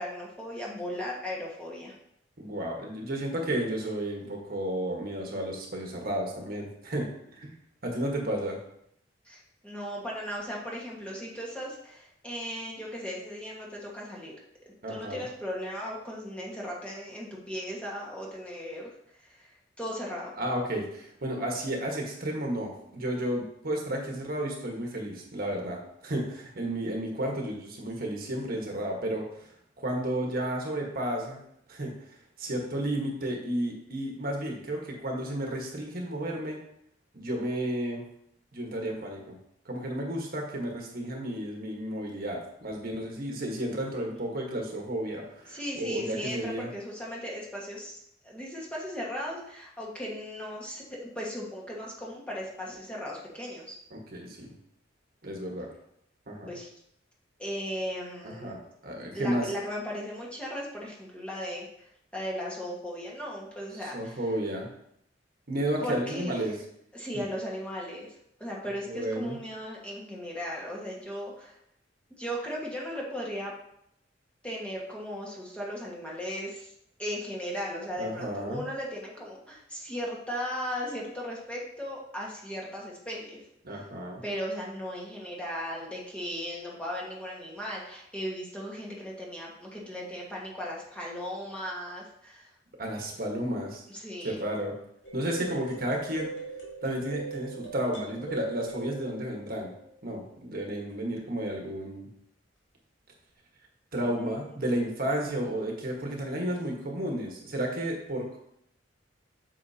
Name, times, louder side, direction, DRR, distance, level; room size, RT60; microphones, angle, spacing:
voice 1, 0.0-1.9 9.2-14.3 14.9-18.9 19.2-19.5 19.8-20.3 45.5-53.8 56.5-56.7 57.4-58.5 59.1-64.2 65.8-66.4 66.9-68.1 68.4-71.6 72.1-73.5 74.4-76.7 77.0-83.4 84.2-92.5 93.9-94.4 104.1-104.4, equal, 5° left, -4 dB, 1.6 m, -37 dB
voice 2, 2.4-7.5 7.8-8.6 14.8-15.2 20.4-29.5 29.8-31.4 31.7-32.0 32.4-36.6 37.1-38.0 38.5-39.4 39.6-46.7 53.9-54.6 55.2-55.7 56.3-56.5 58.2-59.5 63.7-64.7 65.5-66.5 67.1-67.2 68.8-69.4 78.0-78.7 83.6-84.2 92.8-93.8 94.2-94.7 95.1-96.3 96.8-99.7 100.0-102.1 103.9-108.4, right 1 dB, 50° right, 0 dB, 1.4 m, -32 dB
sound 1, 95.0-100.2, right 3 dB, 90° left, 2.1 m, -41 dB
8.2 x 6.5 x 2.8 m, 0.73 s
head